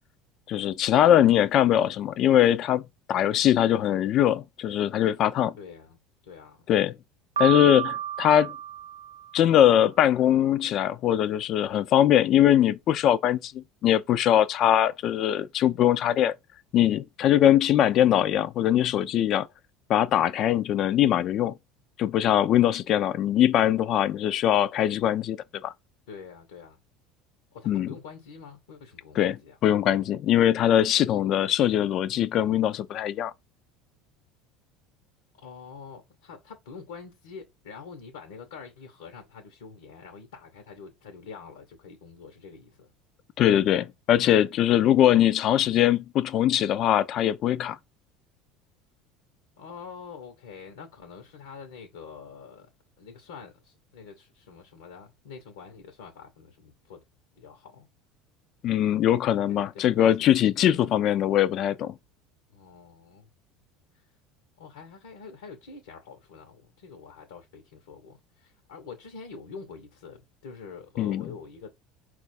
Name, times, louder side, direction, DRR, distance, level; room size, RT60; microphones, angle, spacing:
voice 1, 0.5-2.8 3.1-5.5 6.7-6.9 7.4-8.5 9.3-16.4 16.7-19.5 19.9-21.5 22.0-25.4 25.6-25.7 27.7-27.9 29.2-29.4 29.6-33.3 43.4-47.8 58.6-61.9 71.0-71.2, left 11 dB, 50° left, 0.4 m, -22 dB
voice 2, 5.5-6.6 26.1-26.8 27.5-29.6 35.3-42.9 49.6-52.7 53.0-57.0 57.4-57.9 59.5-60.3 60.6-60.8 61.2-61.3 62.5-63.3 64.6-71.7, left 5 dB, 80° left, 0.8 m, -45 dB
Piano, 7.4-9.5, right 10 dB, 85° right, 0.4 m, -31 dB
4.4 x 2.4 x 4.2 m
hypercardioid pair, 75°, 0 cm